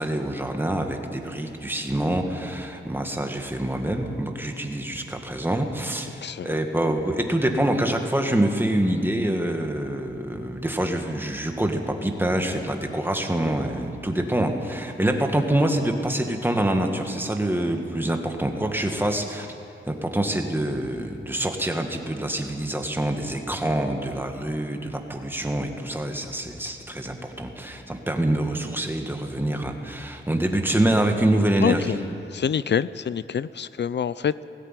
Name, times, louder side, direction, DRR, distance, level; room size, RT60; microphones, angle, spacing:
voice 1, 0.0-19.5 19.9-32.0, right 1 dB, 10° right, 4 dB, 1.9 m, -26 dB
voice 2, 6.2-6.5 31.6-32.0 32.3-34.5, left 8 dB, 60° left, 17 dB, 0.5 m, -26 dB
18.0 x 16.5 x 9.2 m, 2.9 s
wide cardioid pair, 115°, 21 cm